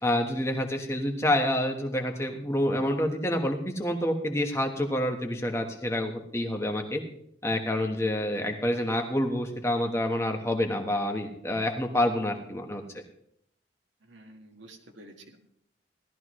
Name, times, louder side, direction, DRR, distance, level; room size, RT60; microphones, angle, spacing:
voice 1, 0.0-7.0 7.4-12.8, left 1 dB, 15° left, 3 dB, 1.3 m, -28 dB
voice 2, 14.0-15.4, right 1 dB, 75° right, 3 dB, 1.8 m, -50 dB
17.0 x 13.0 x 3.2 m, 0.71 s
head